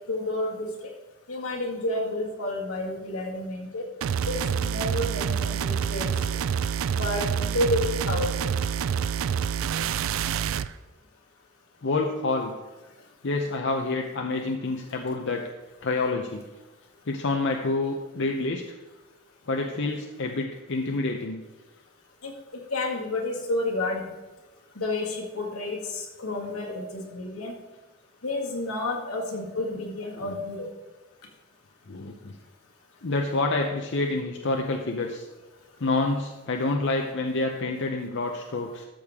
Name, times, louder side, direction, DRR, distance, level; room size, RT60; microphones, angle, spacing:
voice 1, 0.1-0.7 1.3-3.8 4.3-6.4 6.9-8.3 22.2-22.3 22.7-24.1 24.8-27.5 28.2-30.7, left 2 dB, 80° left, 0 dB, 1.9 m, -30 dB
sound 1, 4.0-10.7, right 7 dB, 65° right, 0.3 m, -27 dB
voice 2, 11.8-12.5 13.2-15.5 15.8-16.4 17.1-18.8 19.5-21.4 30.2-30.3 31.9-32.4 33.0-35.3 35.8-38.8, left 3 dB, 55° left, 3 dB, 0.7 m, -28 dB
13.0 x 6.7 x 3.6 m, 1.2 s
head